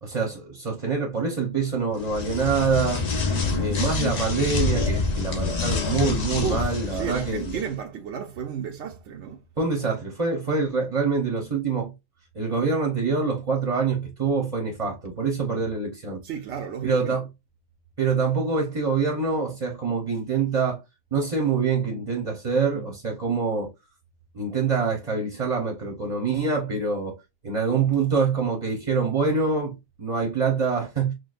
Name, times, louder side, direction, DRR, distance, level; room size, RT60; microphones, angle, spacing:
voice 1, 0.0-3.0 3.6-7.6 9.6-11.9 12.3-16.2 16.8-17.3 18.0-20.8 21.1-23.7 24.3-27.1 27.4-31.1, right 5 dB, 35° right, 0.9 m, -25 dB
sound 1, 2.0-7.7, left 4 dB, 45° left, 0.7 m, -27 dB
voice 2, 3.3-3.7 6.4-9.4 15.5-15.6 16.2-17.2 22.7-23.0, right 8 dB, 75° right, 0.9 m, -34 dB
6.3 x 2.3 x 2.4 m
omnidirectional pair, 1.2 m